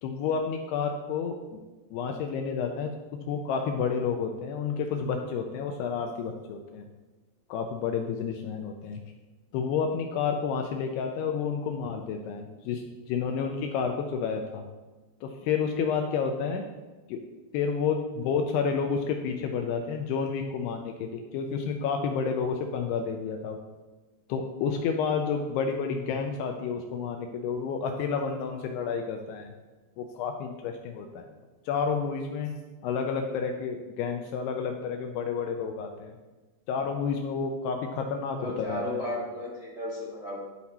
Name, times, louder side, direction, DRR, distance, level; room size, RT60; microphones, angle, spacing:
voice 1, 0.0-1.4 1.9-6.9 7.5-9.0 9.5-14.6 15.2-16.6 17.1-17.2 17.5-23.6 24.3-29.5 30.0-31.3 31.7-36.2 36.7-39.0, left 6 dB, 80° left, 4 dB, 2.4 m, -30 dB
voice 2, 38.4-40.4, left 1 dB, 25° right, -7 dB, 0.7 m, -34 dB
11.5 x 4.2 x 4.2 m, 1.2 s
omnidirectional pair, 5.1 m